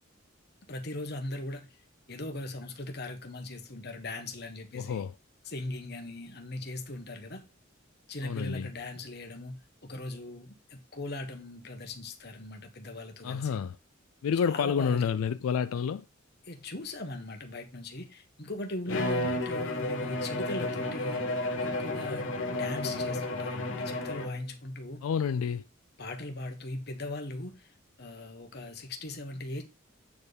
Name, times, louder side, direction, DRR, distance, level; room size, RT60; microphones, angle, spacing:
voice 1, 0.7-1.7 2.1-5.0 5.5-7.4 8.1-13.6 14.4-15.0 16.5-21.2 21.6-25.0 26.0-27.7 28.0-29.6, left 2 dB, 50° left, 1.5 m, -39 dB
voice 2, 4.7-5.2 8.2-8.7 13.2-13.8 14.2-16.1 18.9-19.4 25.0-25.6, left 7 dB, 85° left, 0.3 m, -30 dB
Bowed string instrument, 18.9-24.5, left 2 dB, 65° left, 1.3 m, -32 dB
8.7 x 4.5 x 5.1 m
head